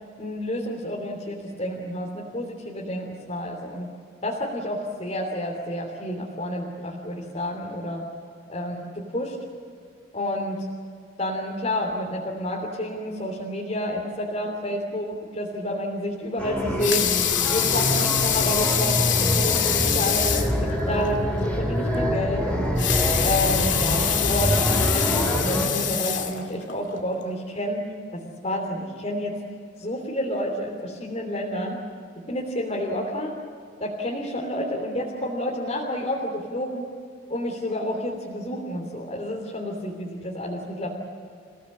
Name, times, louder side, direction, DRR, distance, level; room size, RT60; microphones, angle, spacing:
voice 1, 0.2-3.9 4.2-8.0 8.5-9.3 10.1-10.6 11.2-17.1 17.5-22.6 23.2-27.8 28.1-29.3 29.8-31.8 32.3-33.3 33.8-36.9 37.3-40.9, left 1 dB, 35° left, -3 dB, 3.3 m, -29 dB
sound 1, 16.4-25.7, equal, 5° left, 5.6 m, -25 dB
Water tap faucet / Sink (filling or washing) / Liquid, 16.6-20.6 21.0-21.1 21.5-21.6 22.6-26.8 27.4-27.5, left 10 dB, 70° left, 2.6 m, -25 dB
29.5 x 17.5 x 8.6 m, 2.4 s
head